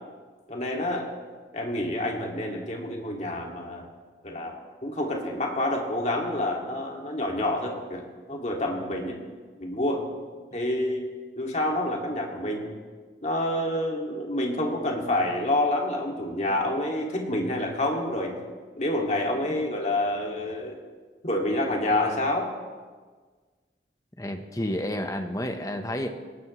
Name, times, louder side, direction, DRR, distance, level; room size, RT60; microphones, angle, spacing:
voice 1, 0.5-1.1 1.5-3.9 4.2-8.0 8.3-9.2 9.6-10.1 10.5-11.1 11.4-12.7 13.2-18.4 18.8-20.8 21.2-22.5, left 1 dB, 40° left, 0 dB, 2.5 m, -28 dB
voice 2, 24.2-26.1, left 1 dB, 20° left, 6 dB, 1.1 m, -30 dB
20.5 x 18.5 x 3.3 m, 1.4 s
head